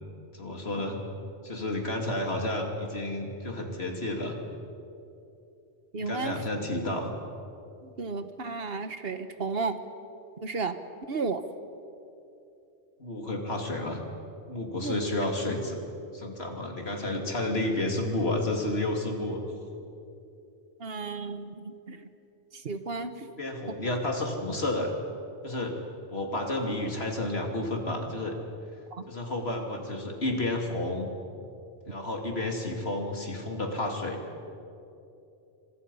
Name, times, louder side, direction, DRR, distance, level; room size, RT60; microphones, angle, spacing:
voice 1, 0.3-1.0 1.4-4.4 6.0-7.1 13.0-14.0 14.5-15.8 16.1-19.4 23.2-24.9 25.4-25.8 26.1-28.4 29.1-31.1 31.9-34.2, left 1 dB, 65° left, 2 dB, 3.1 m, -31 dB
voice 2, 5.9-6.4 8.0-9.8 10.4-10.7 11.1-11.4 14.8-15.0 20.8-22.1 22.6-23.1 28.9-29.0, right 4 dB, 60° right, 9 dB, 1.4 m, -33 dB
29.0 x 25.5 x 5.6 m, 2.8 s
omnidirectional pair, 1.1 m